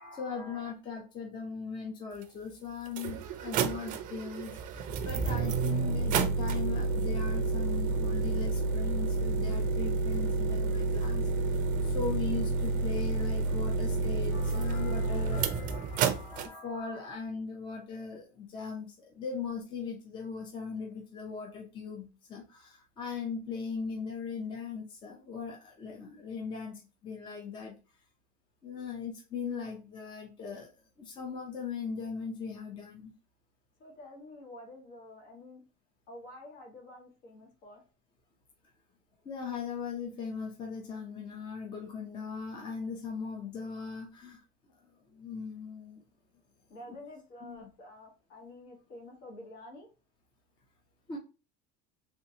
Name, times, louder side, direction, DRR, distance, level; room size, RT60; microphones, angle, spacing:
voice 1, 0.0-27.7 28.6-30.7 31.0-33.1 39.2-44.4 45.1-46.0 47.4-47.7 51.1-51.2, left 5 dB, 25° left, 1 dB, 0.6 m, -39 dB
sound 1, 2.2-2.3 2.9-16.5, right 3 dB, 40° right, 0.5 m, -30 dB
voice 2, 33.8-35.6 36.1-37.8 46.7-49.9, left 1 dB, 65° left, 0 dB, 1.7 m, -49 dB
3.3 x 2.9 x 2.7 m, 0.32 s
cardioid pair, 155°, 21 cm